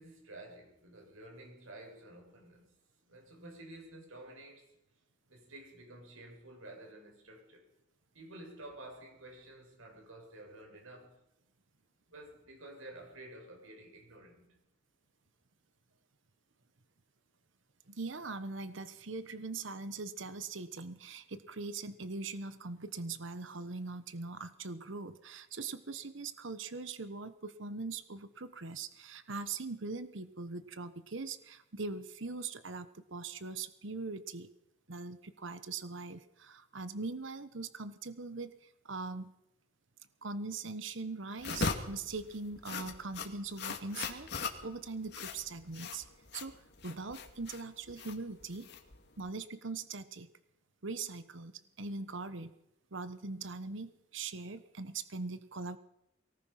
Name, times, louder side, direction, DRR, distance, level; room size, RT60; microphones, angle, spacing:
voice 1, 0.0-2.7 3.0-4.7 5.3-7.6 8.1-11.2 12.1-14.6, right 1 dB, 85° right, 7.2 m, -51 dB
voice 2, 17.9-34.5 34.9-39.3 40.2-46.1 46.3-46.6 46.8-48.7 49.2-50.3 50.8-51.5 51.8-52.5 52.9-55.8, right 3 dB, 65° right, 1.1 m, -41 dB
sound 1, 41.4-49.3, left 4 dB, 55° left, 2.2 m, -40 dB
24.0 x 18.5 x 5.9 m
head